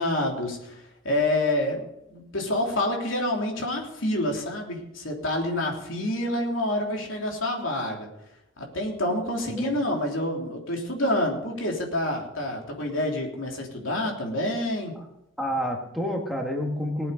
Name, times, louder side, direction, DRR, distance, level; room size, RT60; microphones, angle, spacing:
voice 1, 0.0-8.1 8.6-15.0, left 1 dB, 85° left, 0 dB, 3.3 m, -28 dB
voice 2, 9.5-9.8 15.4-17.1, equal, ahead, 0 dB, 1.9 m, -29 dB
20.0 x 8.6 x 5.2 m, 0.82 s
head